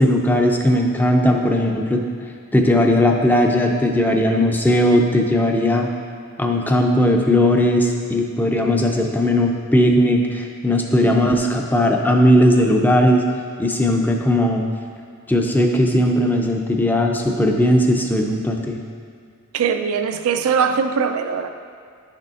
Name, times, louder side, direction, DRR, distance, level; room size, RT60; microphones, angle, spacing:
voice 1, 0.0-2.0 2.5-5.9 6.4-13.2 13.6-14.6 15.3-18.8, left 1 dB, 10° left, 2 dB, 0.4 m, -17 dB
voice 2, 19.5-21.5, right 6 dB, 85° right, 8 dB, 0.4 m, -21 dB
10.0 x 6.5 x 2.4 m, 2.2 s
head